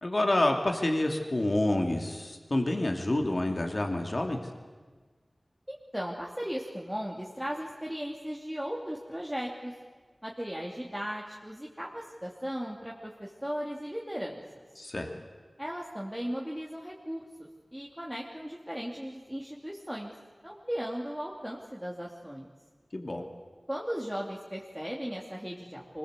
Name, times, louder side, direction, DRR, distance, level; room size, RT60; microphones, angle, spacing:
voice 1, 0.0-4.4 14.8-15.1 22.9-23.2, left 1 dB, 50° left, 3 dB, 2.7 m, -28 dB
voice 2, 5.7-9.7 10.2-14.6 15.6-20.1 20.4-22.5 23.7-26.0, equal, 5° right, -3 dB, 2.7 m, -37 dB
24.5 x 21.0 x 8.2 m, 1.4 s
wide cardioid pair, 65°, 0 cm